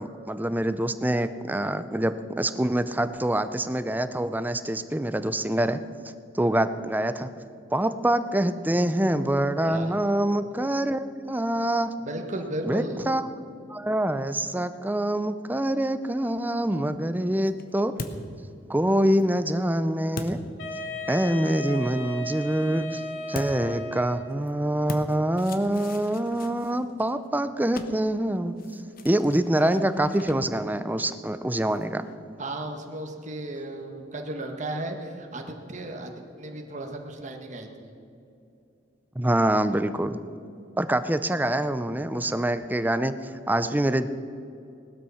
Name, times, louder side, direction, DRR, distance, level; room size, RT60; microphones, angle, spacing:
voice 1, 0.0-5.8 6.3-7.3 7.7-11.9 12.6-13.2 13.7-17.9 18.7-20.4 21.1-23.0 23.3-28.5 29.0-32.0 39.2-40.2 40.8-44.1, right 1 dB, 10° right, 12 dB, 0.5 m, -25 dB
voice 2, 12.0-13.0 32.4-36.1 36.4-37.9, right 1 dB, 40° right, 3 dB, 1.6 m, -35 dB
sound 1, 16.8-21.3 23.3-32.1, left 2 dB, 50° left, 1.1 m, -43 dB
Wind instrument woodwind instrument, 20.6-24.5, equal, 80° left, 2.1 m, -35 dB
18.5 x 12.5 x 5.7 m, 2.6 s
head